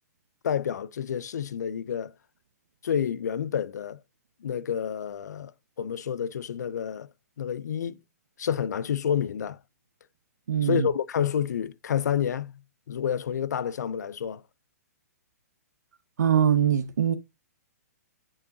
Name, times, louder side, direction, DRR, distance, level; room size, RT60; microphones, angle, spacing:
voice 1, 0.4-2.1 2.8-4.0 4.4-5.5 5.8-7.1 7.4-8.0 8.4-9.6 10.6-12.5 12.9-14.4, left 8 dB, 80° left, 0.5 m, -29 dB
voice 2, 10.5-10.9 16.2-17.1, right 9 dB, 85° right, 0.7 m, -22 dB
8.7 x 4.6 x 2.6 m
hypercardioid pair, 180°, 9 cm